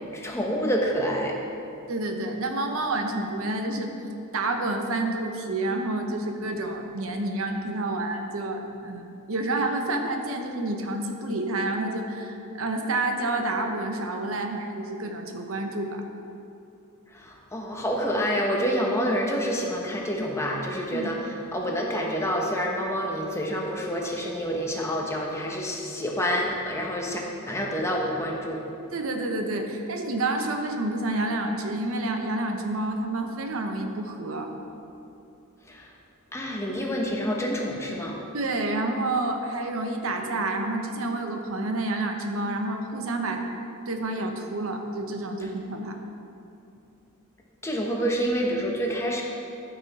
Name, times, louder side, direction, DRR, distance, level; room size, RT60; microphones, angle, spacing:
voice 1, 0.1-1.3 17.1-28.6 35.7-35.9 36.3-38.2 45.4-45.5 47.6-49.2, equal, 15° left, -1 dB, 1.0 m, -28 dB
voice 2, 1.9-3.9 4.3-16.0 20.9-21.1 28.9-34.5 38.3-43.4 43.9-46.0, right 2 dB, 70° right, 4 dB, 0.8 m, -29 dB
13.0 x 5.9 x 4.2 m, 2.8 s
head